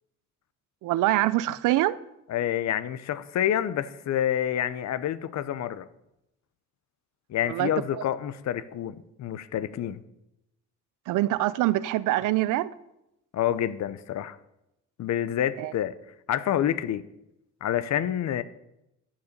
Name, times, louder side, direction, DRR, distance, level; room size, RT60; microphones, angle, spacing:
voice 1, 0.8-2.0 7.5-7.7 11.1-12.7 15.6-15.7, right 16 dB, 90° right, 0.5 m, -24 dB
voice 2, 2.3-5.9 7.3-10.0 13.3-14.4 15.0-15.9 16.3-17.0 17.6-18.4, left 10 dB, 65° left, 0.7 m, -28 dB
10.5 x 6.9 x 6.6 m
cardioid pair, 90°, 30 cm